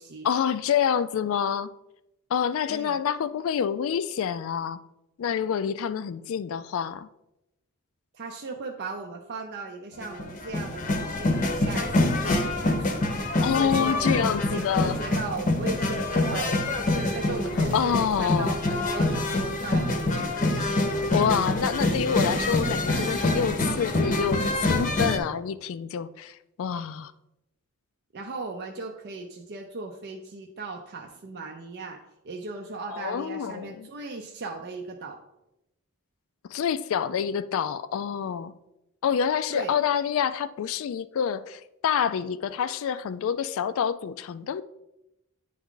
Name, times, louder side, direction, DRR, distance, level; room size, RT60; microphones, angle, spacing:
voice 1, 0.2-1.7 2.3-4.8 5.2-7.1 13.4-15.0 17.5-18.6 21.1-27.1 32.9-33.9 36.5-38.5 39.0-44.6, left 7 dB, 65° left, 0.3 m, -27 dB
voice 2, 8.1-13.0 13.6-14.2 14.5-16.8 17.1-20.3 28.1-35.2 39.5-39.7, right 3 dB, 50° right, 0.5 m, -37 dB
sound 1, 10.0-25.2, left 2 dB, 35° left, 0.7 m, -26 dB
9.3 x 3.5 x 3.7 m
head